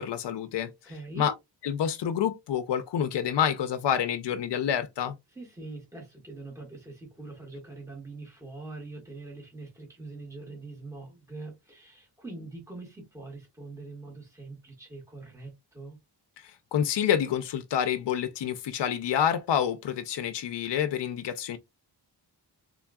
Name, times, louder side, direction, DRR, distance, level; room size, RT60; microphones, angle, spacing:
voice 1, 0.0-0.7 1.2-1.3 1.6-5.1 16.4-21.6, left 9 dB, 80° left, 0.6 m, -28 dB
voice 2, 0.8-1.3 5.3-16.0, right 3 dB, 5° right, 1.8 m, -43 dB
3.7 x 3.5 x 2.3 m
wide cardioid pair, 120°, 42 cm